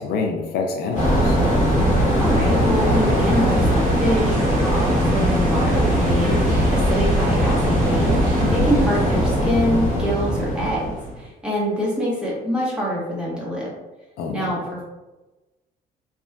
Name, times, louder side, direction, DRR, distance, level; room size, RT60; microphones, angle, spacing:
voice 1, 0.0-1.4 8.4-8.7 14.2-14.6, left 4 dB, 70° left, 3 dB, 0.4 m, -27 dB
sound 1, 0.9-10.1, right 2 dB, 50° right, 0.8 m, -35 dB
sound 2, 1.0-11.2, equal, 45° left, 0.9 m, -20 dB
sound 3, 1.7-9.2, right 2 dB, 70° right, 1.0 m, -37 dB
voice 2, 2.2-13.7 14.3-14.8, equal, 5° right, -6 dB, 1.0 m, -25 dB
2.9 x 2.4 x 2.2 m, 1.1 s
cardioid pair, 110°, 17 cm